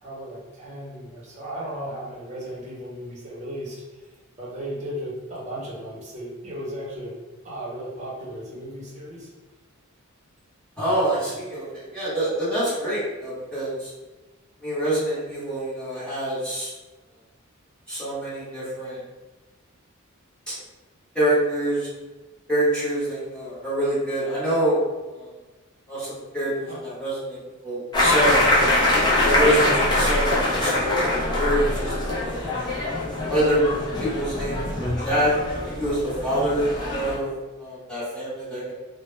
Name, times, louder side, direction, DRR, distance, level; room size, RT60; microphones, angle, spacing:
voice 1, 0.0-4.1 4.4-7.1 7.4-9.3 26.7-26.8 29.4-29.8, equal, 35° right, -6 dB, 0.8 m, -35 dB
voice 2, 10.8-13.9 14.6-16.7 17.9-19.0 20.5-20.6 21.1-21.9 22.5-24.8 25.1-25.3 25.9-28.5 29.2-32.5 33.3-33.6 34.0-35.3 35.6-37.3 37.6-38.7, right 1 dB, 5° left, -11 dB, 0.8 m, -26 dB
sound 1, 27.9-37.2, left 1 dB, 20° left, 0.4 m, -23 dB
2.1 x 2.0 x 3.0 m, 1.2 s
head